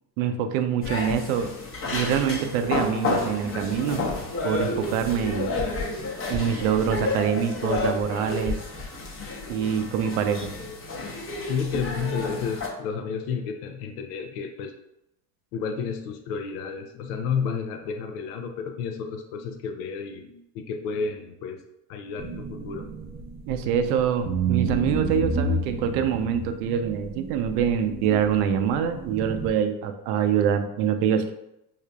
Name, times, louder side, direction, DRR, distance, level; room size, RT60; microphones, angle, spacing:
voice 1, 0.2-1.5 1.9-4.1 4.4-5.5 6.3-8.6 9.5-10.5 23.5-31.3, right 8 dB, 70° right, 8 dB, 0.6 m, -25 dB
sound 1, 0.8-12.7, left 3 dB, 30° left, 0.8 m, -30 dB
voice 2, 11.5-14.7 15.5-21.6 21.9-22.9, left 6 dB, 80° left, 6 dB, 0.6 m, -31 dB
sound 2, 22.2-23.9 24.3-29.5, right 3 dB, 20° right, 0.5 m, -30 dB
4.9 x 2.7 x 2.3 m, 0.85 s
supercardioid pair, 95°, 47 cm